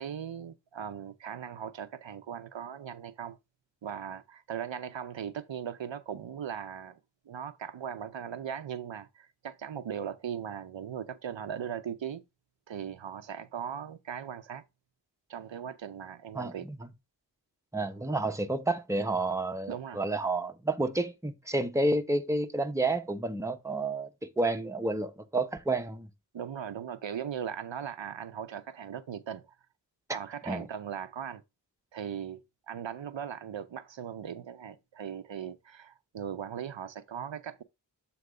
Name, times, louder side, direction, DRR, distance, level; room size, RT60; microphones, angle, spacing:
voice 1, 0.0-3.4 3.8-7.0 7.3-12.2 12.7-14.6 15.3-16.7 19.7-20.0 26.3-29.5 30.1-31.4 31.9-37.6, right 8 dB, 85° right, 0.7 m, -39 dB
voice 2, 16.3-16.8 17.7-26.1 30.5-30.6, right 2 dB, 5° right, 0.7 m, -30 dB
7.8 x 3.0 x 4.8 m
wide cardioid pair, 55°, 44 cm